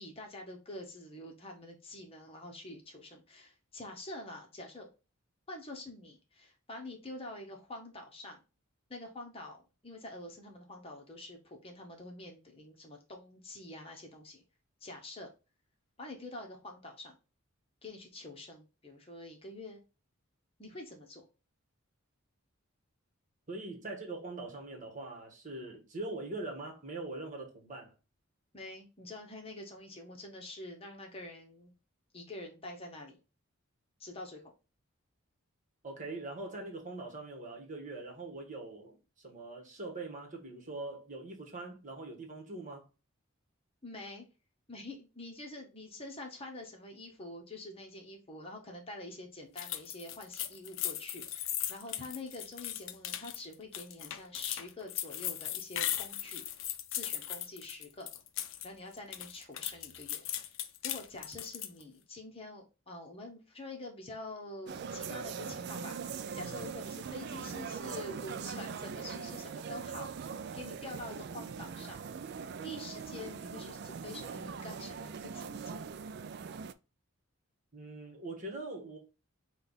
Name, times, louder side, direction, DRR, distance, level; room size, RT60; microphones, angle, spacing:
voice 1, 0.0-4.9 5.5-8.4 8.9-14.4 14.8-15.3 16.0-17.1 17.8-19.8 20.6-21.2 28.5-31.7 32.1-33.2 34.0-34.5 43.8-44.3 44.7-56.4 56.9-58.1 58.6-60.2 60.8-72.0 72.5-75.8, left 2 dB, 25° left, 0.9 m, -46 dB
voice 2, 23.5-27.9 35.8-42.9 77.7-79.0, right 2 dB, 35° right, 1.3 m, -42 dB
sound 1, 49.6-58.7 59.0-61.8, left 12 dB, 65° left, 0.5 m, -38 dB
sound 2, 64.7-76.7, right 6 dB, 50° right, 0.3 m, -41 dB
5.4 x 2.4 x 3.9 m
head